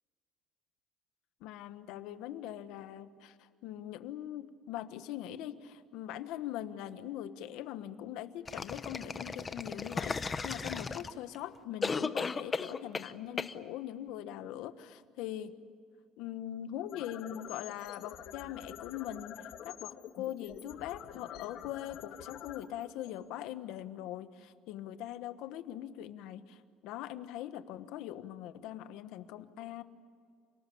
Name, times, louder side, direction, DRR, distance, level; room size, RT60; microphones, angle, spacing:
voice 1, 1.4-15.5 16.2-29.8, left 12 dB, 80° left, 11 dB, 1.3 m, -42 dB
sound 1, 8.5-11.4 11.8-13.1 13.4-13.5, left 4 dB, 20° left, 0.7 m, -35 dB
sound 2, 16.9-23.8, left 9 dB, 60° left, 1.6 m, -48 dB
28.5 x 19.0 x 8.6 m, 2.1 s
cardioid pair, 160°, 0 cm